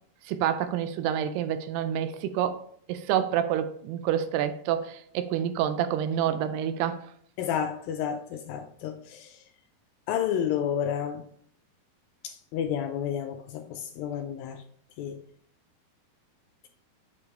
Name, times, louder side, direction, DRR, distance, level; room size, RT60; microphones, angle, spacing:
voice 1, 0.3-2.6 2.9-7.0, right 9 dB, 90° right, 2.6 m, -28 dB
voice 2, 7.4-9.4 10.1-11.2 12.2-14.6 15.0-15.2, left 9 dB, 80° left, 2.1 m, -31 dB
7.8 x 4.8 x 3.1 m
omnidirectional pair, 4.5 m